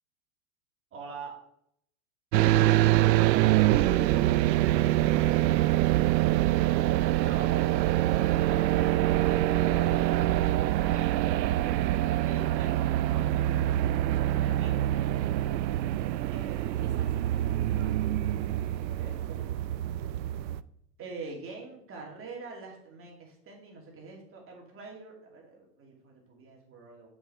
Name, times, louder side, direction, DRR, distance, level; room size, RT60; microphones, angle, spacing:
voice 1, 0.9-1.3 3.7-4.0 7.2-11.3 12.1-13.8 14.4-14.9 16.1-16.8 18.4-19.5 21.0-27.1, right 4 dB, 25° right, -1 dB, 2.6 m, -45 dB
sound 1, 2.3-20.6, right 14 dB, 85° right, 0.6 m, -25 dB
voice 2, 2.4-2.9 5.1-5.8 14.6-15.6 16.8-17.4 17.7-17.9, right 3 dB, 65° right, 1 dB, 3.8 m, -49 dB
7.1 x 6.4 x 4.4 m, 0.73 s
hypercardioid pair, 125°, 49 cm